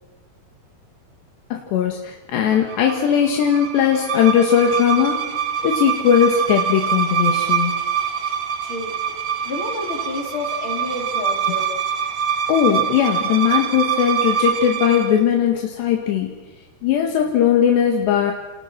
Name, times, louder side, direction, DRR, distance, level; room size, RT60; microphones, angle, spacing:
voice 1, 1.5-5.2 5.6-7.7 12.5-16.3 16.8-18.3, left 8 dB, 80° left, 2 dB, 4.1 m, -18 dB
sound 1, 2.5-15.2, right 8 dB, 85° right, 1.2 m, -24 dB
voice 2, 8.6-11.9, left 3 dB, 30° left, 1 dB, 4.4 m, -30 dB
30.0 x 29.0 x 6.1 m, 1.1 s
omnidirectional pair, 4.9 m